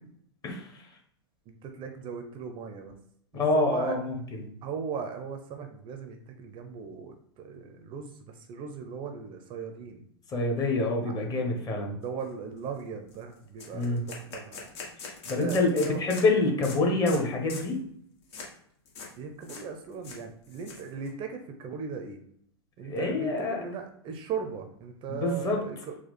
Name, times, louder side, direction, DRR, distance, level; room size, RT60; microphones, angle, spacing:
voice 1, 0.4-0.9 3.3-4.4 10.3-12.0 13.7-14.0 15.3-17.8 22.8-23.6 25.1-25.6, left 2 dB, 25° left, 1 dB, 1.3 m, -26 dB
voice 2, 1.5-3.0 3.3-4.0 4.6-10.0 11.9-14.7 15.4-16.0 19.2-22.2 22.8-26.0, right 6 dB, 35° right, 5 dB, 0.7 m, -38 dB
sound 1, 12.2-12.3 12.6-12.8 13.1-13.2 13.6-16.3 16.6-16.8 17.1-17.2 17.5-17.7 18.3-18.5 18.9-19.1 19.4-19.6 19.9-21.1, left 4 dB, 65° left, 1.6 m, -42 dB
4.4 x 2.3 x 4.2 m, 0.67 s
hypercardioid pair, 105°, 15 cm